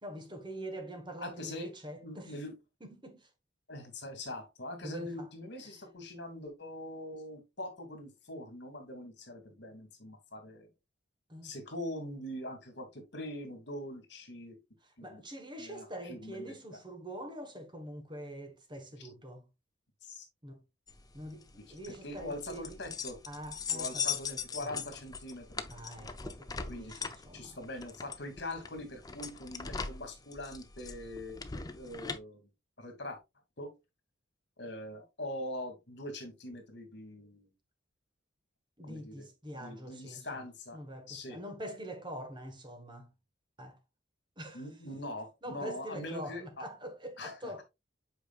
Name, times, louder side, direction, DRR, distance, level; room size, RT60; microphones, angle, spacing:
voice 1, 0.0-2.3 2.8-3.3 4.8-5.3 5.6-5.8 11.3-11.5 14.8-19.5 20.4-20.6 21.1-23.0 23.3-24.9 25.7-27.6 38.8-43.1 43.6-43.8 44.4-44.6 45.4-47.6, right 1 dB, 25° right, 1.3 m, -45 dB
voice 2, 1.2-1.7 2.0-2.5 3.7-10.7 11.4-14.6 15.0-15.2 15.6-16.5 19.0-19.1 20.0-20.3 21.9-23.2 23.7-25.7 26.7-27.0 27.3-32.5 32.8-33.2 33.6-33.7 34.6-37.5 38.8-39.3 39.6-40.8 41.1-41.4 44.5-46.4 47.2-47.3, left 1 dB, 60° left, 2.2 m, -42 dB
sound 1, 20.9-32.2, left 6 dB, 20° left, 0.6 m, -40 dB
8.1 x 4.9 x 2.4 m
head